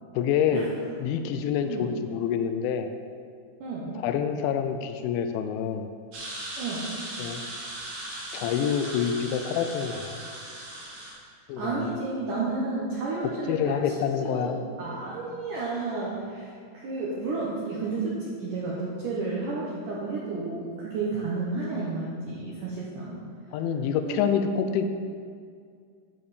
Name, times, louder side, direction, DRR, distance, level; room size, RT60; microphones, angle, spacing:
voice 1, 0.2-0.7 1.0-2.9 4.0-5.9 7.2-7.4 8.3-10.2 11.5-11.9 13.5-14.6 23.5-24.9, left 8 dB, 85° left, 7 dB, 3.0 m, -27 dB
voice 2, 1.6-1.9 3.6-4.0 6.6-6.9 11.6-13.8 14.3-14.5 14.8-23.2 24.0-24.2, right 3 dB, 80° right, -6 dB, 1.9 m, -31 dB
sound 1, 6.1-11.1, right 1 dB, 55° right, 3.5 m, -38 dB
11.0 x 6.7 x 4.2 m, 2.2 s
omnidirectional pair, 5.4 m